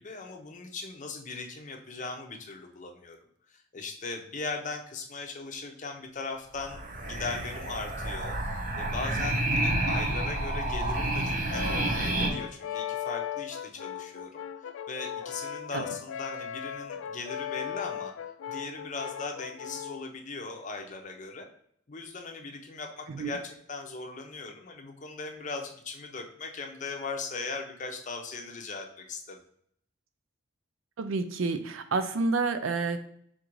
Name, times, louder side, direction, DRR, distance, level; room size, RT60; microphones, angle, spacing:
voice 1, 0.0-3.2 3.5-18.1 18.5-21.5 21.9-29.4, left 4 dB, 35° left, 3 dB, 0.6 m, -39 dB
sound 1, 6.5-12.3, right 1 dB, 40° right, 0.7 m, -29 dB
Brass instrument, 11.5-20.1, left 9 dB, 75° left, 0.3 m, -37 dB
voice 2, 31.0-33.1, right 3 dB, 75° right, 10 dB, 0.4 m, -29 dB
3.9 x 2.5 x 4.5 m, 0.67 s
head